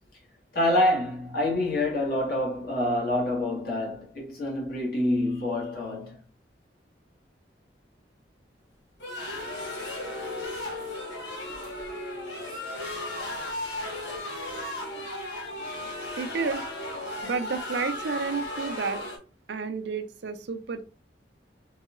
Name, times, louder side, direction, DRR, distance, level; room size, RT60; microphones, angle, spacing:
voice 1, 0.5-6.2, left 1 dB, 60° left, 1.5 m, -26 dB
sound 1, 9.0-19.2, left 1 dB, 80° left, 1.2 m, -35 dB
voice 2, 16.2-16.7 17.2-19.0 19.5-20.8, right 5 dB, 75° right, 0.5 m, -31 dB
4.0 x 2.7 x 2.4 m
head